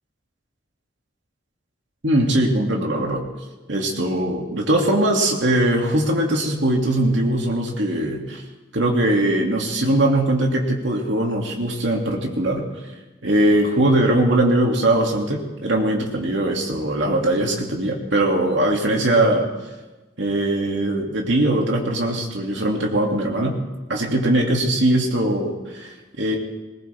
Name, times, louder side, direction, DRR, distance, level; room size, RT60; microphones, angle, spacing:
voice 1, 2.0-3.3 3.7-8.4 8.7-12.7 13.2-19.5 20.2-23.6 23.9-26.4, right 1 dB, 75° right, 0 dB, 2.5 m, -21 dB
20.5 x 20.0 x 3.5 m, 1.2 s
head